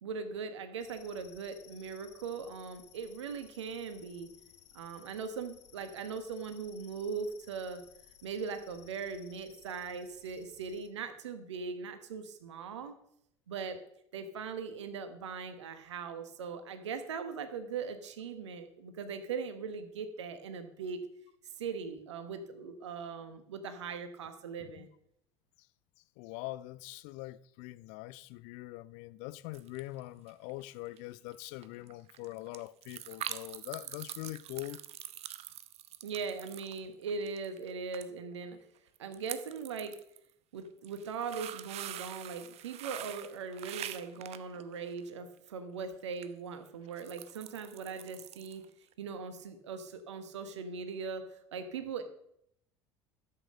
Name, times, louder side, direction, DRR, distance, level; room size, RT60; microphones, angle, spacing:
voice 1, 0.0-4.3 4.7-7.8 8.2-13.0 13.5-13.8 14.1-21.0 21.6-24.9 36.0-38.6 39.0-40.0 40.5-48.7 49.0-52.0, right 5 dB, 70° right, 1.3 m, -40 dB
sound 1, 0.8-10.9, left 10 dB, 70° left, 1.2 m, -59 dB
voice 2, 26.2-34.8, left 18 dB, 55° left, 0.5 m, -43 dB
sound 2, 29.5-30.0 30.3-30.7 31.0-31.1 31.3-31.4 31.6-37.7 37.9-38.1 38.3-38.4 39.0-40.2 40.7-45.1 46.1-46.3 46.7-48.7 48.9-49.0, right 12 dB, 45° right, 0.9 m, -44 dB
12.5 x 7.8 x 6.6 m
figure-of-eight pair, 70°, 15 cm